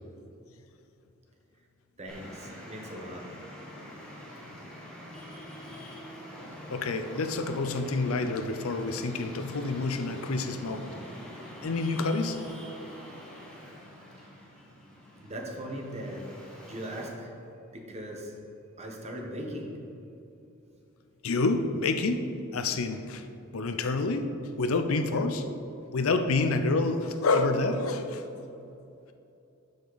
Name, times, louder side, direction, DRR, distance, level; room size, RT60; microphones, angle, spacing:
voice 1, 2.0-3.3 15.2-16.3 16.6-17.3 17.7-18.3 18.8-19.8, equal, 30° right, 1 dB, 1.1 m, -39 dB
Traffic noise roadway noise, 2.1-17.1, equal, 5° left, 1.4 m, -45 dB
voice 2, 6.7-10.9 11.6-12.4 21.2-23.2 23.5-25.4 25.9-28.2, left 3 dB, 80° left, 7 dB, 0.6 m, -28 dB
13.0 x 5.1 x 4.0 m, 2.8 s
head